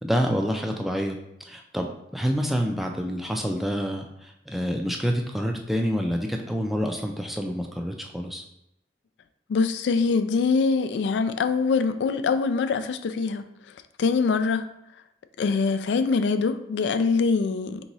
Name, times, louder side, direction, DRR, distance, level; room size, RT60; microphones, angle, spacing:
voice 1, 0.0-8.4, equal, ahead, 2 dB, 0.3 m, -27 dB
voice 2, 9.5-13.4 14.0-14.7 15.4-17.8, left 4 dB, 85° left, 10 dB, 0.3 m, -23 dB
3.5 x 3.0 x 4.0 m, 0.82 s
head